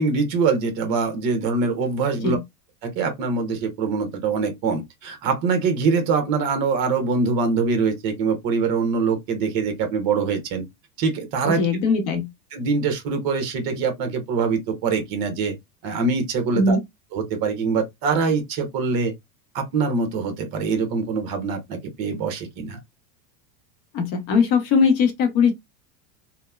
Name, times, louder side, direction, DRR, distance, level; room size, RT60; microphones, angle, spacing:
voice 1, 0.0-2.4 2.8-10.6 11.0-11.7 12.5-15.5 15.8-16.8 17.1-19.1 19.5-22.8, right 4 dB, 45° right, 1.0 m, -23 dB
voice 2, 11.6-12.3 16.5-16.8 23.9-25.5, left 4 dB, 40° left, 0.8 m, -20 dB
3.0 x 2.1 x 2.2 m
supercardioid pair, 135°, 50 cm